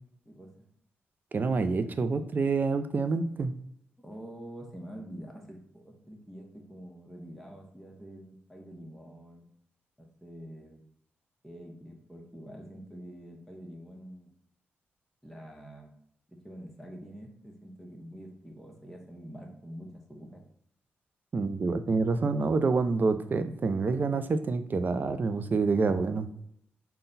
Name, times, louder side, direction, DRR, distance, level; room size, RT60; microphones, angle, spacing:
voice 1, 0.2-0.7 4.0-9.5 10.0-10.8 11.4-14.3 15.2-15.9 16.3-20.4, equal, 5° left, 0 dB, 1.1 m, -46 dB
voice 2, 1.3-3.5 21.3-26.3, right 4 dB, 45° right, 10 dB, 0.4 m, -27 dB
3.8 x 2.2 x 3.9 m, 0.71 s
cardioid pair, 70°, 4 cm